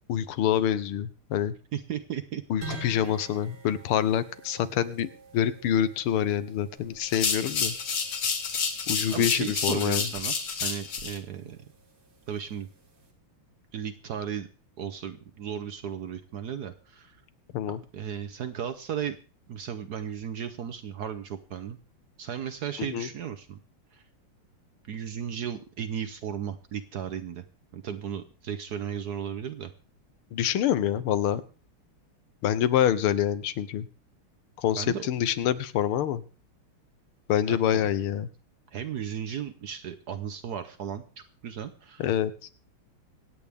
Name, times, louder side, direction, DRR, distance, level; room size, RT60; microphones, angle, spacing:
voice 1, 0.1-1.5 2.5-7.7 8.9-10.1 17.5-17.8 22.9-23.1 30.3-31.4 32.4-33.9 34.6-36.2 37.3-38.3 42.0-42.3, left 10 dB, 80° left, 14 dB, 1.7 m, -26 dB
voice 2, 1.7-2.4 9.1-10.3 10.6-11.6 12.3-12.7 13.7-14.5 14.8-17.2 17.7-19.2 19.5-21.8 22.2-23.6 23.9-24.0 24.9-27.4 27.7-29.7 34.8-35.1 37.5-37.9 38.7-41.0 41.4-42.0, right 8 dB, 60° right, 9 dB, 1.1 m, -35 dB
sound 1, 2.6-13.1, right 3 dB, 85° right, 3.8 m, -48 dB
sound 2, 7.1-11.2, left 5 dB, 65° left, 2.3 m, -29 dB
25.5 x 8.6 x 3.5 m, 0.37 s
omnidirectional pair, 2.4 m